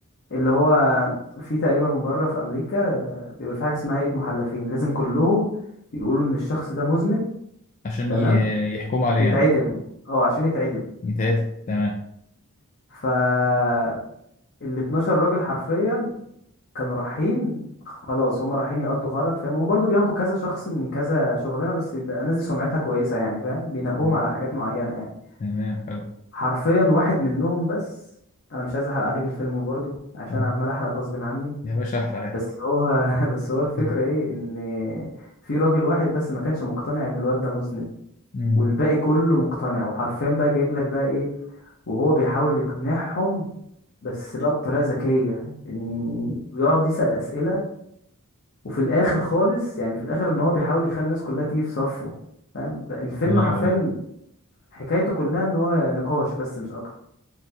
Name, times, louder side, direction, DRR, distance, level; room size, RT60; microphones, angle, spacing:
voice 1, 0.3-5.5 5.9-7.3 8.1-8.5 9.2-9.8 10.1-10.9 12.9-14.0 14.6-16.1 16.7-17.6 18.1-25.1 26.3-27.8 28.5-31.5 32.5-35.1 35.4-37.9 38.6-41.3 41.9-43.4 44.0-47.6 48.6-52.1 52.5-53.9 54.7-56.8, left 1 dB, 50° left, -6 dB, 0.7 m, -23 dB
voice 2, 7.8-9.4 11.0-12.0 24.0-24.2 25.4-26.1 30.3-30.5 31.6-32.3 33.8-33.9 38.3-38.7 53.3-53.7, left 2 dB, 35° left, 1 dB, 0.3 m, -24 dB
3.8 x 2.2 x 2.7 m, 0.74 s
head